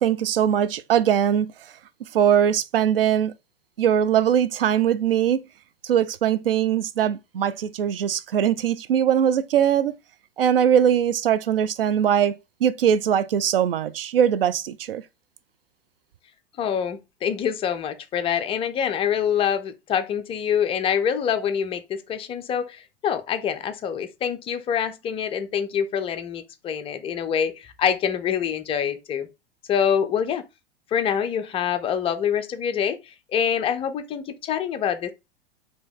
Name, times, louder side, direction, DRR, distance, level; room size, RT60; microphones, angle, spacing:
voice 1, 0.0-1.5 2.1-3.3 3.8-5.5 5.8-10.0 10.4-15.0, right 9 dB, 65° right, 0.5 m, -21 dB
voice 2, 16.6-29.3 29.7-30.4 30.9-35.1, left 8 dB, 20° left, 0.5 m, -25 dB
4.9 x 2.9 x 3.7 m
figure-of-eight pair, 90°, 31 cm